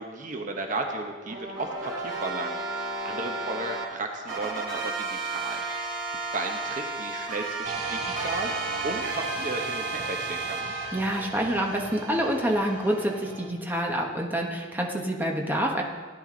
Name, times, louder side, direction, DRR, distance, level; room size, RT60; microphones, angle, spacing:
voice 1, 0.0-6.0 6.3-10.7, right 2 dB, 40° right, 3 dB, 1.0 m, -34 dB
sound 1, 1.3-3.9 4.3-10.9, right 3 dB, 65° right, 3.0 m, -33 dB
sound 2, 7.6-13.5, right 3 dB, 85° right, 2.0 m, -36 dB
voice 2, 10.9-15.8, equal, 10° right, 0 dB, 1.3 m, -27 dB
16.5 x 10.0 x 3.9 m, 1.5 s
head